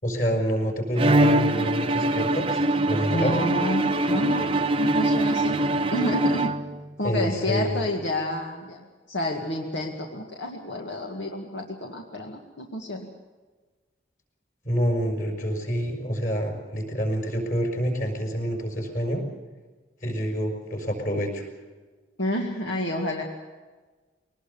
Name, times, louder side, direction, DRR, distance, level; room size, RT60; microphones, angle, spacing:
voice 1, 0.0-3.4 7.0-7.9 14.6-19.2 20.0-21.5, equal, 45° left, 3 dB, 5.9 m, -27 dB
Bowed string instrument, 1.0-7.0, right 1 dB, 30° right, 0.8 m, -23 dB
voice 2, 3.1-5.6 5.9-6.6 7.0-8.8 9.1-13.1 22.2-23.2, left 1 dB, 80° left, 1 dB, 2.1 m, -29 dB
23.0 x 19.5 x 7.1 m, 1.3 s
head